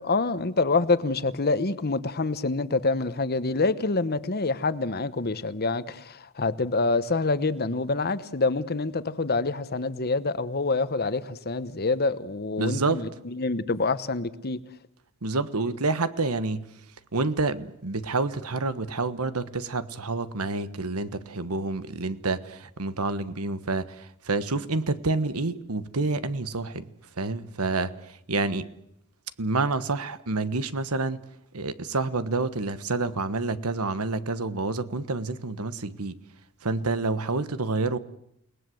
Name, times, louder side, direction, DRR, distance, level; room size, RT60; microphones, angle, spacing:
voice 1, 0.0-14.6, left 3 dB, 45° left, 1.1 m, -26 dB
voice 2, 12.6-13.0 15.2-16.7 17.1-26.9 27.2-28.7 29.4-31.2 31.5-36.2 36.6-38.0, right 3 dB, 85° right, 1.3 m, -28 dB
29.0 x 19.5 x 7.8 m
head